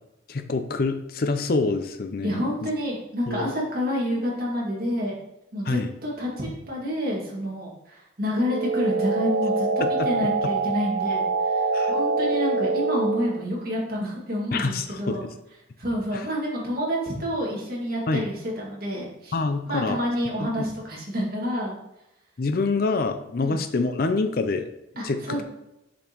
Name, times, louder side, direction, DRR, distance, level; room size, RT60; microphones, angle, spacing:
voice 1, 0.3-2.7 3.3-3.5 5.7-5.9 9.8-10.1 11.7-11.9 14.5-15.3 16.1-16.2 18.1-18.3 19.3-20.0 20.4-20.7 22.4-24.7 25.0-25.4, left 3 dB, 50° left, 8 dB, 0.5 m, -26 dB
voice 2, 2.2-5.2 5.5-15.3 15.8-19.3 19.7-21.8 23.4-23.6 25.0-25.4, equal, 50° right, -3 dB, 2.0 m, -29 dB
sound 1, 8.4-13.4, right 3 dB, 85° right, 0.5 m, -24 dB
6.9 x 5.2 x 3.0 m, 0.89 s
head